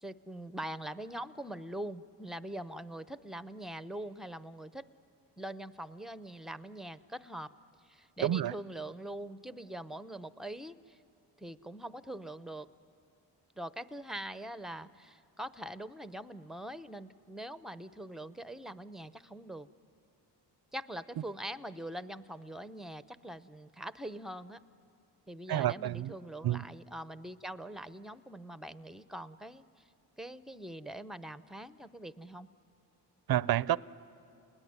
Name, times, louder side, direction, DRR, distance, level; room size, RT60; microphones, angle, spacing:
voice 1, 0.0-4.9 5.4-7.5 7.8-11.0 11.4-12.7 13.6-19.7 20.7-24.6 25.3-29.8 30.2-32.5, right 1 dB, ahead, 0.7 m, -43 dB
voice 2, 8.2-8.5 25.5-26.1 26.4-26.7 33.3-33.8, right 12 dB, 60° right, 0.6 m, -29 dB
29.0 x 20.5 x 9.6 m
cardioid pair, 70°, 42 cm